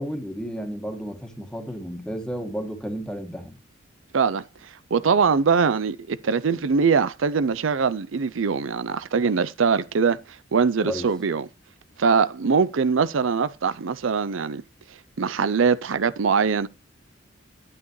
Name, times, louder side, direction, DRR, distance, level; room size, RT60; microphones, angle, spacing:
voice 1, 0.0-3.6 10.8-11.1, equal, 5° left, 1.7 m, -32 dB
voice 2, 4.1-4.4 4.9-10.2 10.5-11.5 12.0-14.6 15.2-16.7, right 5 dB, 85° right, 0.5 m, -22 dB
11.0 x 9.6 x 3.1 m
head